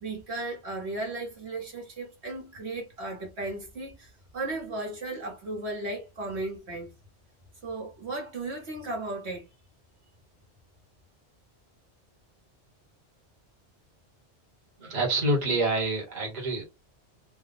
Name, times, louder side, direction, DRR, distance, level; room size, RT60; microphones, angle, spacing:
voice 1, 0.0-6.9 7.6-9.5, right 2 dB, 70° right, 1.6 m, -35 dB
voice 2, 14.8-16.6, right 2 dB, 40° right, 1.4 m, -27 dB
3.5 x 2.3 x 4.0 m
omnidirectional pair, 1.1 m